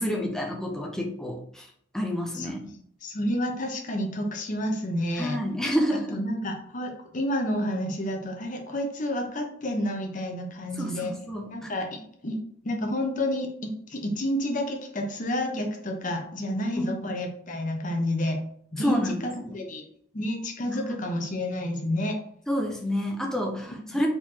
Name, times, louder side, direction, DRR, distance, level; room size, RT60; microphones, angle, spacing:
voice 1, 0.0-1.7 1.9-2.6 5.2-6.2 10.8-11.7 16.7-17.0 18.8-19.6 20.8-21.0 22.5-24.1, equal, 5° left, 1 dB, 0.7 m, -29 dB
voice 2, 2.3-5.4 6.1-11.1 11.5-12.4 12.6-13.5 13.9-18.4 18.7-19.8 20.1-22.2 23.6-24.0, left 1 dB, 40° left, 3 dB, 0.8 m, -30 dB
4.5 x 4.1 x 2.8 m, 0.65 s
head